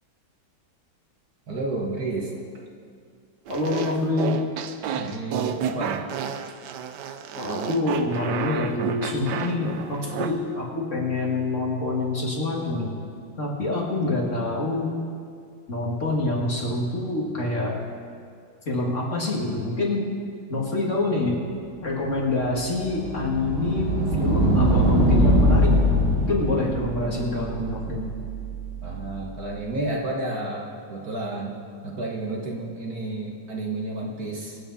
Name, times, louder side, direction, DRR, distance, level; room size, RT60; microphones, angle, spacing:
voice 1, 1.5-2.3 4.9-6.1 28.8-31.6 31.8-34.6, right 2 dB, 50° right, -2 dB, 1.9 m, -31 dB
voice 2, 3.5-4.3 7.4-12.9 13.4-14.9 15.7-17.8 18.7-20.1 20.5-21.4 21.8-25.7 26.2-28.1, left 2 dB, 35° left, -3 dB, 2.4 m, -26 dB
sound 1, 3.5-10.3, right 7 dB, 65° right, 1.2 m, -31 dB
sound 2, 22.2-29.0, equal, 85° right, 2.9 m, -22 dB
25.5 x 8.9 x 4.2 m, 2.2 s
omnidirectional pair, 2.2 m